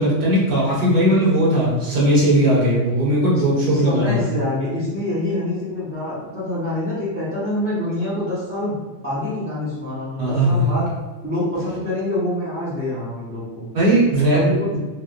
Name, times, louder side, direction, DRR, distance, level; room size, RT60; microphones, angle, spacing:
voice 1, 0.0-4.3 10.2-10.6 13.7-14.4, right 1 dB, 45° right, -8 dB, 1.4 m, -18 dB
voice 2, 3.7-8.8 9.0-10.9 11.2-13.7 14.3-14.7, left 1 dB, 15° right, -15 dB, 1.1 m, -26 dB
3.1 x 3.0 x 2.6 m, 1.2 s
omnidirectional pair, 1.3 m